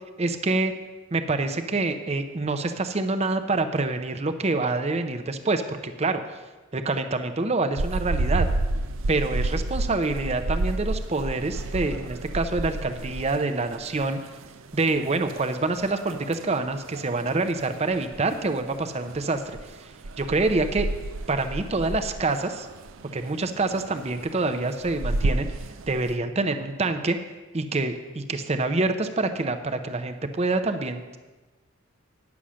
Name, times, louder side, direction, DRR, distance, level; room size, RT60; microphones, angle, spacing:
voice 1, 0.2-0.7 1.1-6.2 6.7-8.5 9.1-14.2 14.7-19.4 19.8-19.9 20.2-20.9 21.3-22.7 23.1-25.5 25.9-27.2 27.5-31.2, right 3 dB, 30° right, 8 dB, 0.6 m, -26 dB
sound 1, 7.8-26.2, right 2 dB, 85° right, 0.6 m, -31 dB
10.0 x 7.1 x 6.2 m, 1.2 s
head